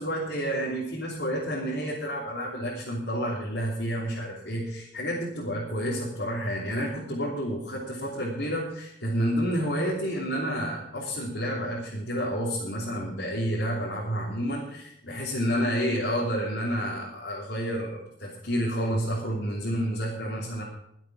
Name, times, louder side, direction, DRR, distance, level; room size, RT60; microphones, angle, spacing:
voice 1, 0.0-20.6, equal, 70° left, -6 dB, 3.2 m, -30 dB
22.5 x 8.0 x 4.9 m, 0.76 s
head